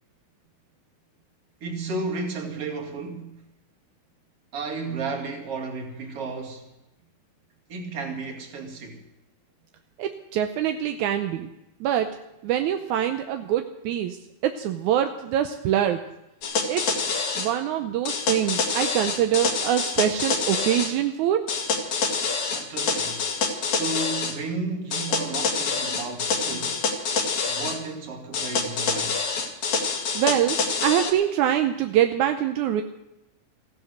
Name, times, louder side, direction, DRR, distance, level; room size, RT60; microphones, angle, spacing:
voice 1, 1.6-3.4 4.5-6.6 7.7-9.0 22.5-23.2 23.6-26.8 27.5-29.2, right 3 dB, 45° right, 2.8 m, -33 dB
voice 2, 10.0-11.5 11.8-12.2 12.4-16.0 16.7-21.5 30.1-32.8, right 10 dB, 75° right, 1.8 m, -24 dB
sound 1, 16.4-17.5 18.1-20.9 21.5-24.4 24.9-27.8 28.3-31.1, left 4 dB, 55° left, 3.1 m, -26 dB
15.5 x 12.5 x 6.6 m
omnidirectional pair, 4.2 m